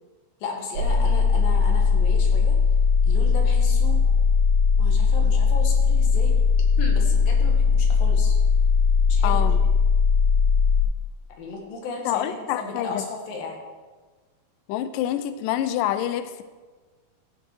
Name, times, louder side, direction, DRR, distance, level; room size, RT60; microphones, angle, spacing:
voice 1, 0.4-2.6 3.1-4.0 4.8-6.3 6.8-8.4 9.1-9.5 11.4-13.6, left 3 dB, 70° left, 1 dB, 3.3 m, -35 dB
sound 1, 0.8-10.8, left 5 dB, 90° right, 3.4 m, -19 dB
voice 2, 9.2-9.6 12.1-13.0 14.7-16.4, left 12 dB, 85° left, 11 dB, 1.9 m, -27 dB
15.0 x 7.3 x 4.6 m, 1.3 s
omnidirectional pair, 4.4 m